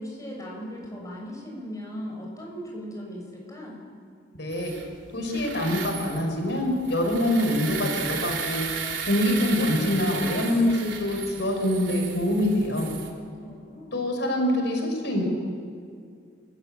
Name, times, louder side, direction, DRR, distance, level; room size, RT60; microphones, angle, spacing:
voice 1, 0.0-3.8 13.4-14.1, equal, 20° left, -2 dB, 7.3 m, -38 dB
voice 2, 4.4-4.7 5.1-8.7 9.1-12.9 13.9-15.2, left 1 dB, 70° left, 2 dB, 5.5 m, -25 dB
sound 1, 4.5-13.1, right 6 dB, 85° right, 3.5 m, -35 dB
29.5 x 15.5 x 9.2 m, 2.2 s
head